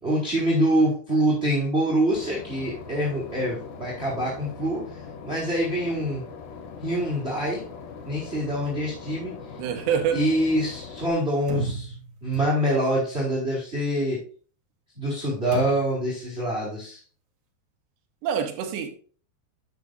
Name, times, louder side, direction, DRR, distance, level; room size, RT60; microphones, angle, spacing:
voice 1, 0.0-4.8 5.2-6.2 6.8-7.6 8.1-9.3 10.1-11.9 12.2-14.2 15.0-17.0, right 1 dB, 15° right, 4.0 m, -25 dB
Boat Water vehicle / Engine, 2.1-11.1, left 5 dB, 75° left, 3.3 m, -41 dB
voice 2, 9.6-10.2 18.2-18.9, right 8 dB, 90° right, 3.5 m, -26 dB
sound 1, 11.5-13.0 15.5-16.1, right 3 dB, 45° right, 1.0 m, -34 dB
11.0 x 9.2 x 2.5 m
omnidirectional pair, 4.9 m